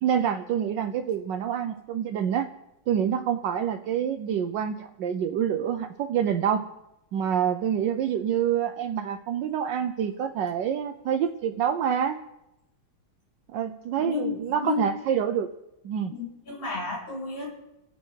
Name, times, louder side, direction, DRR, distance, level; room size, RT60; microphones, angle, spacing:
voice 1, 0.0-2.5 2.9-6.6 7.1-12.2 13.5-15.5 15.8-16.1, right 8 dB, 75° right, 6 dB, 1.4 m, -27 dB
voice 2, 14.0-14.9 16.1-17.5, left 4 dB, 85° left, -3 dB, 5.0 m, -32 dB
27.5 x 9.2 x 4.6 m, 0.91 s
omnidirectional pair, 2.0 m